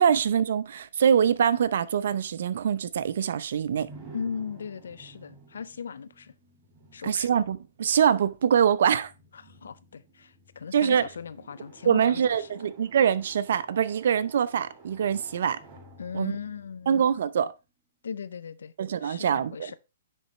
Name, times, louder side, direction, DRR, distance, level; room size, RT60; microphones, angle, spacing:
voice 1, 0.0-3.9 7.0-9.1 10.7-11.1 11.8-15.6 16.1-16.3 16.9-17.5 18.8-19.7, right 8 dB, 65° right, 0.6 m, -24 dB
sound 1, 3.8-17.6, right 3 dB, 15° right, 4.5 m, -53 dB
voice 2, 4.1-6.3 6.9-7.3 9.3-12.6 16.0-17.1 18.0-18.7 19.0-19.8, left 6 dB, 80° left, 0.5 m, -38 dB
9.9 x 4.1 x 3.2 m
hypercardioid pair, 135°, 0 cm